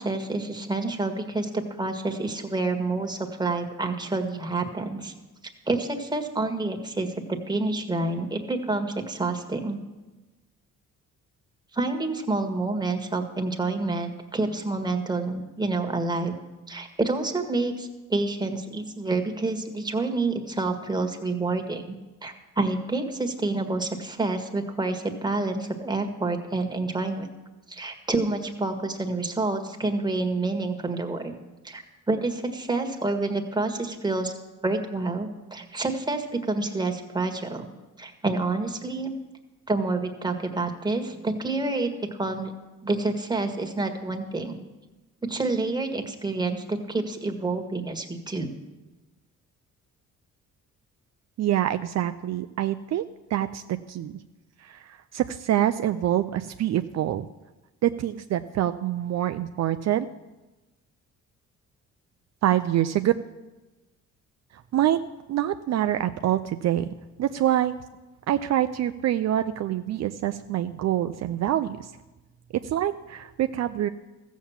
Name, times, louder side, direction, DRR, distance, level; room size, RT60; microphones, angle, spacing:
voice 1, 0.0-5.1 5.7-7.1 7.5-9.8 11.7-16.3 16.7-21.9 22.2-27.3 27.7-31.3 31.6-34.3 34.6-37.7 38.0-39.2 39.7-41.9 42.2-42.5 42.8-44.6 45.2-48.5, right 3 dB, 15° right, 4 dB, 1.7 m, -28 dB
voice 2, 51.4-53.0 53.3-54.2 54.6-57.3 57.8-60.1 62.4-63.1 64.5-65.0 65.3-66.9 67.2-67.8 68.3-71.9 72.5-73.9, right 12 dB, 60° right, 9 dB, 0.5 m, -25 dB
14.5 x 7.3 x 7.3 m, 1.1 s
cardioid pair, 90°, 30 cm